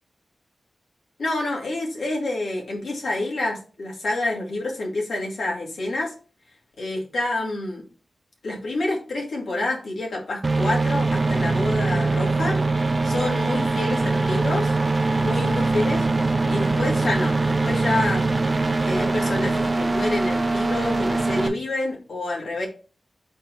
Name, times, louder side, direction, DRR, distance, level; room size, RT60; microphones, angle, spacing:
voice 1, 1.2-6.1 6.8-7.8 8.4-12.6 13.0-14.7 15.2-16.0 16.5-18.2 18.8-22.7, left 2 dB, 90° left, -2 dB, 2.3 m, -28 dB
sound 1, 10.4-21.5, right 3 dB, 35° right, 0.6 m, -22 dB
4.4 x 4.2 x 5.3 m, 0.37 s
wide cardioid pair, 105°, 0 cm